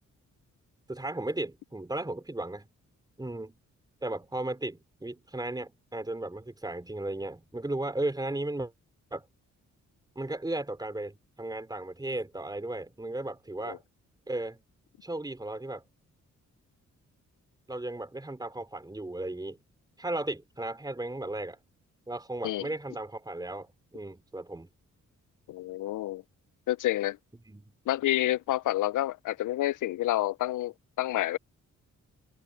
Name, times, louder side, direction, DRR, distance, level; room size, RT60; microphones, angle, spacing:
voice 1, 0.9-2.7 3.2-3.6 4.0-8.7 9.1-9.3 10.2-13.8 14.3-14.6 15.0-15.8 17.7-19.6 20.0-21.6 22.1-24.7 27.5-27.7, right 2 dB, 15° right, 4.2 m, -35 dB
voice 2, 25.5-26.2 26.7-27.2 27.9-31.4, left 14 dB, 80° left, 0.5 m, -29 dB
open air
cardioid pair, 90°, 31 cm